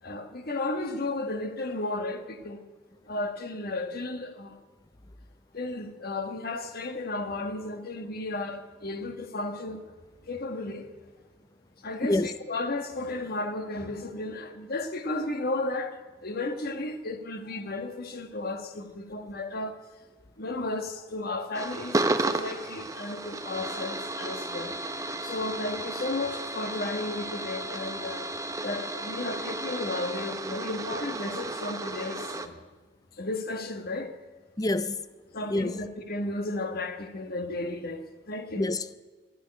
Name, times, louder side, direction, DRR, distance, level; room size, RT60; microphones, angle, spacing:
voice 1, 0.0-2.6 3.1-4.6 5.5-10.0 10.3-10.9 11.8-19.8 20.4-28.3 28.6-32.7 33.1-34.1 35.3-38.6, left 2 dB, 50° left, 1.4 m, -34 dB
sound 1, 21.5-32.5, right 2 dB, 15° right, 0.7 m, -33 dB
voice 2, 34.6-35.0 35.5-35.8 38.6-38.9, left 2 dB, 20° left, 0.5 m, -27 dB
13.0 x 9.2 x 9.9 m
head